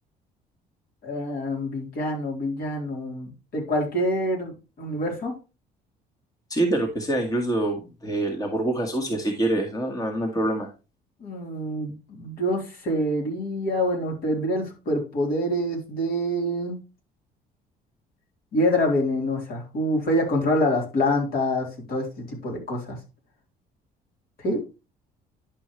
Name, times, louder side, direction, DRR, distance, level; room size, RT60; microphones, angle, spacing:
voice 1, 1.0-5.3 11.2-16.8 18.5-23.0 24.4-24.6, left 1 dB, 65° left, 0 dB, 3.8 m, -26 dB
voice 2, 6.5-10.7, right 1 dB, 20° left, 3 dB, 1.6 m, -25 dB
10.5 x 5.5 x 3.2 m, 0.29 s
cardioid pair, 110°, 17 cm